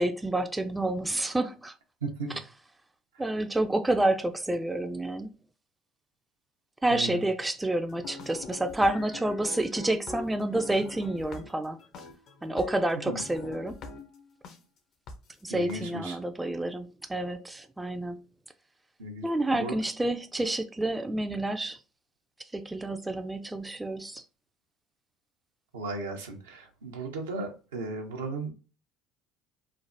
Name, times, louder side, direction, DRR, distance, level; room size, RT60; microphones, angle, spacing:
voice 1, 0.0-1.7 3.2-5.3 6.8-11.8 12.4-13.8 15.4-18.2 19.2-21.8 22.5-24.2, right 1 dB, 10° right, 0.3 m, -29 dB
voice 2, 2.0-2.4 6.9-7.2 12.9-13.2 15.5-16.2 19.0-19.2 19.5-19.8 25.7-28.5, right 3 dB, 85° right, 0.6 m, -36 dB
sound 1, 7.9-14.6 15.1-15.2 15.7-15.8, left 3 dB, 60° left, 0.6 m, -43 dB
3.2 x 2.0 x 2.5 m
hypercardioid pair, 70°, 0 cm